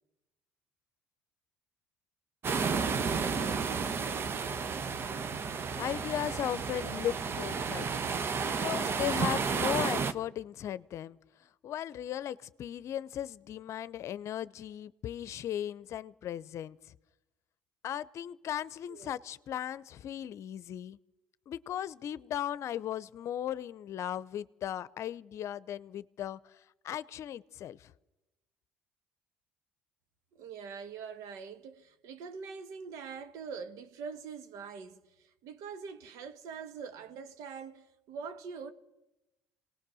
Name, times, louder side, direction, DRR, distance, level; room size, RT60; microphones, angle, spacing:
sound 1, 2.4-10.1, right 5 dB, 45° right, 1.1 m, -32 dB
voice 1, 5.8-7.9 8.4-16.9 17.8-21.0 21.5-27.9, left 11 dB, 60° left, 0.7 m, -37 dB
voice 2, 30.3-38.7, right 6 dB, 75° right, 1.4 m, -44 dB
27.0 x 18.5 x 6.3 m
hypercardioid pair, 70°, 6 cm